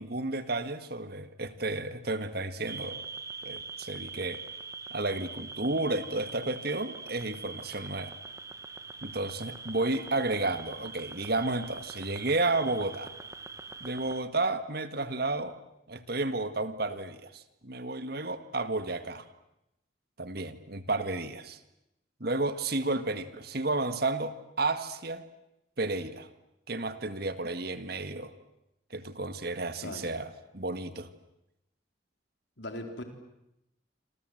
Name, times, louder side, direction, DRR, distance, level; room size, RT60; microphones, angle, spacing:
voice 1, 0.0-3.0 3.4-4.4 4.9-8.1 9.0-13.1 13.8-15.6 15.9-19.2 20.2-21.6 22.2-25.2 25.8-26.3 26.7-28.3 28.9-31.1, right 2 dB, 50° right, 11 dB, 1.8 m, -32 dB
sound 1, 2.7-14.2, right 4 dB, 15° right, 1.1 m, -43 dB
voice 2, 32.6-33.0, left 1 dB, 65° left, 5 dB, 4.0 m, -38 dB
27.0 x 27.0 x 7.9 m, 0.87 s
head